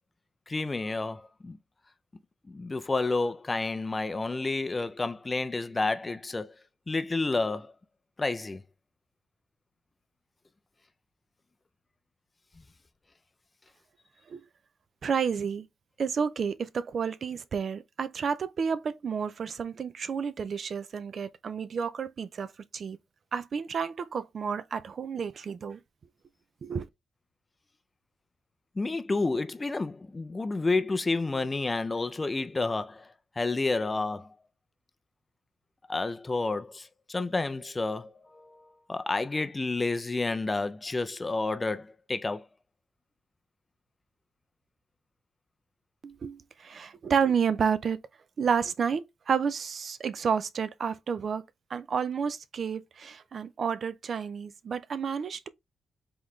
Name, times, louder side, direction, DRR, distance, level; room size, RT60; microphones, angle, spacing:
voice 1, 0.5-1.6 2.5-6.5 6.9-7.7 8.2-8.6 28.8-33.1 33.4-34.3 35.9-42.5, left 3 dB, 25° left, 0.3 m, -30 dB
voice 2, 15.0-15.6 16.0-22.5 22.7-23.0 23.3-25.8 26.6-26.9 46.0-48.0 48.4-51.4 51.7-55.5, right 6 dB, 55° right, 0.3 m, -30 dB
3.9 x 3.8 x 3.0 m
cardioid pair, 115°, 0 cm